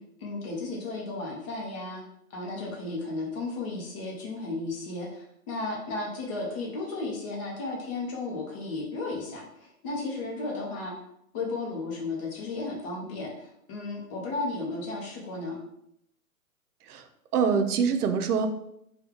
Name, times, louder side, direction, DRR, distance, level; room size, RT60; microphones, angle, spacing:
voice 1, 0.2-2.0 2.3-10.9 11.3-15.6, left 3 dB, 25° left, -2 dB, 0.6 m, -34 dB
voice 2, 17.3-18.5, right 6 dB, 85° right, 8 dB, 0.6 m, -24 dB
3.3 x 2.3 x 3.4 m, 0.76 s
hypercardioid pair, 140°, 44 cm